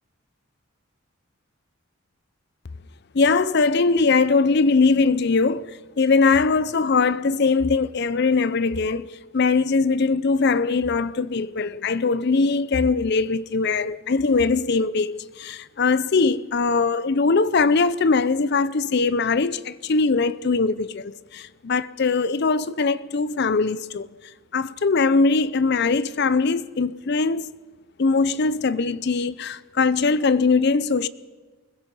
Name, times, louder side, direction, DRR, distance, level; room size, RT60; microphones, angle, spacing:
voice 1, 3.1-24.1 24.5-27.5 28.0-31.1, left 4 dB, 50° left, 0.5 m, -21 dB
24.0 x 21.0 x 5.4 m
head